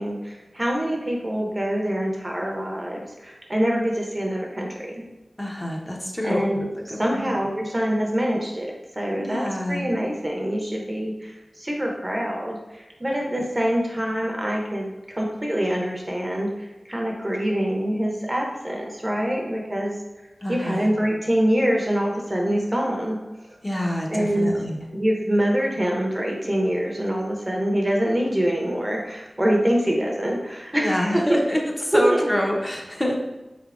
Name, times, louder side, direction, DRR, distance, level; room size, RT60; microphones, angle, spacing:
voice 1, 0.0-5.1 6.2-6.7 7.0-16.5 16.9-19.9 20.5-23.2 24.1-24.5 24.9-31.4 31.9-32.3, equal, 25° right, -1 dB, 0.7 m, -25 dB
voice 2, 5.4-6.5 6.9-7.3 9.2-9.9 13.1-13.2 20.4-20.8 23.6-24.8 30.8-33.1, equal, 20° left, -1 dB, 0.8 m, -26 dB
4.3 x 3.3 x 2.4 m, 1.1 s
cardioid pair, 45°, 0 cm